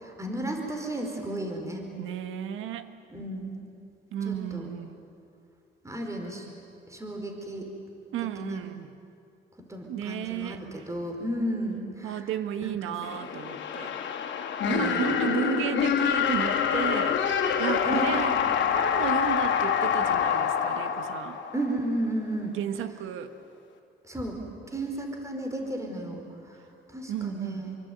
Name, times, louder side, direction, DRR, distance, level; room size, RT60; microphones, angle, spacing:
voice 1, 0.0-1.8 3.1-3.5 4.2-4.7 5.8-6.5 6.9-7.7 8.4-8.6 9.6-10.6 10.9-12.2 12.6-12.9 14.7-15.0 17.8-18.5 21.5-22.6 24.0-24.4 24.7-26.2 26.9-27.8, right 1 dB, 15° right, 3 dB, 4.8 m, -33 dB
voice 2, 2.0-2.9 4.1-4.9 8.1-8.9 9.9-10.8 12.0-13.9 14.6-17.2 17.6-18.4 18.7-21.4 22.5-23.3 27.1-27.6, right 10 dB, 90° right, 10 dB, 1.6 m, -33 dB
sound 1, 13.0-21.9, left 8 dB, 70° left, 2.9 m, -26 dB
27.0 x 23.5 x 9.4 m, 2.5 s
cardioid pair, 90°, 20 cm